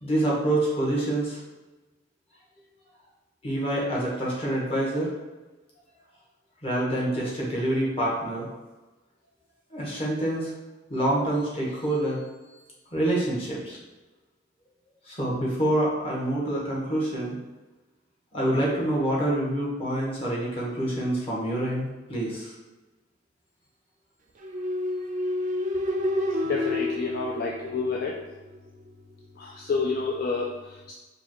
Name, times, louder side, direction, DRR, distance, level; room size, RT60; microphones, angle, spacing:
voice 1, 0.0-1.4 3.4-5.1 6.6-8.5 9.7-10.5 10.9-12.2 12.9-13.8 15.1-17.4 18.3-22.5, right 1 dB, 30° left, -5 dB, 1.2 m, -26 dB
sound 1, 24.4-28.2, left 1 dB, 40° right, 0.5 m, -29 dB
voice 2, 26.4-28.2 29.4-30.9, left 4 dB, 55° left, -2 dB, 0.4 m, -29 dB
5.1 x 2.3 x 3.0 m, 1.1 s
head